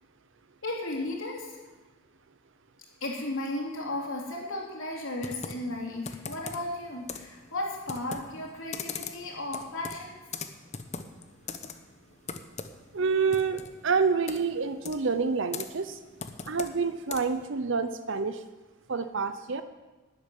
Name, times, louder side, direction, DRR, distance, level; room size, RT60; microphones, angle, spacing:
voice 1, 0.6-1.6 3.0-10.2, left 1 dB, 65° left, -1 dB, 3.4 m, -35 dB
Computer keyboard, 5.2-17.5, left 5 dB, 30° left, 0.8 m, -41 dB
voice 2, 12.9-16.0 16.5-18.4 18.9-19.6, right 5 dB, 55° right, 10 dB, 0.6 m, -28 dB
12.0 x 8.1 x 9.9 m, 1.2 s
head